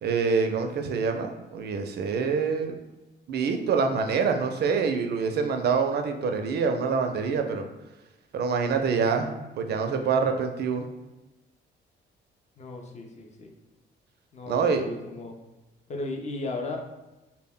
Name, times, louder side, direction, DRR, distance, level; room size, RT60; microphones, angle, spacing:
voice 1, 0.0-2.8 3.3-7.6 8.3-9.3 9.6-10.9 14.5-14.8, right 5 dB, 55° right, 5 dB, 0.4 m, -26 dB
voice 2, 12.6-13.5 14.3-15.4 15.9-16.8, left 2 dB, 35° left, 2 dB, 0.5 m, -35 dB
2.1 x 2.1 x 3.5 m, 1.0 s
cardioid pair, 90°, 20 cm